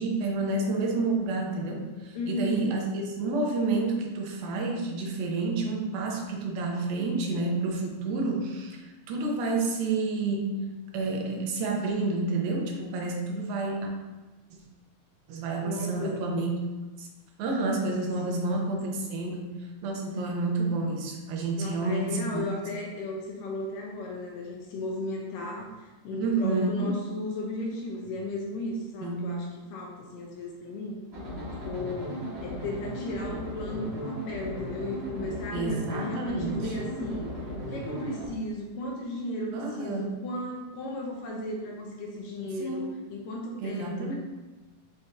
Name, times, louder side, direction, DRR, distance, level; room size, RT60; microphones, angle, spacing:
voice 1, 0.0-10.7 10.9-13.9 15.3-16.5 17.0-17.1 17.4-19.6 19.8-22.5 26.1-26.9 29.0-29.4 35.5-36.7 39.5-40.1 42.6-42.9 43.6-44.2, right 3 dB, 80° right, 0 dB, 2.6 m, -29 dB
voice 2, 2.1-2.7 15.6-16.2 18.2-18.5 21.6-31.0 31.6-37.3 37.6-44.2, left 1 dB, 75° left, -1 dB, 2.2 m, -35 dB
sound 1, 31.1-38.3, equal, 35° right, 1.0 m, -36 dB
6.7 x 5.4 x 2.7 m, 1.2 s
omnidirectional pair, 4.2 m